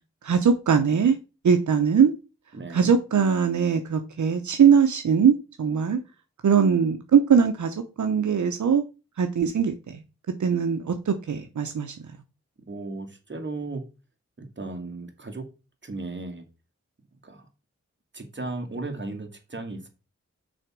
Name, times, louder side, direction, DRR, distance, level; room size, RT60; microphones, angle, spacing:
voice 1, 0.2-1.2 1.4-2.1 2.7-6.0 6.4-8.8 9.2-10.0 10.4-11.9, right 7 dB, 80° right, 0.9 m, -21 dB
voice 2, 2.5-2.9 12.6-13.8 14.4-15.4 15.8-16.4 17.2-17.5 18.1-19.9, right 2 dB, 40° right, 2.1 m, -35 dB
6.4 x 4.3 x 6.1 m
wide cardioid pair, 75°, 29 cm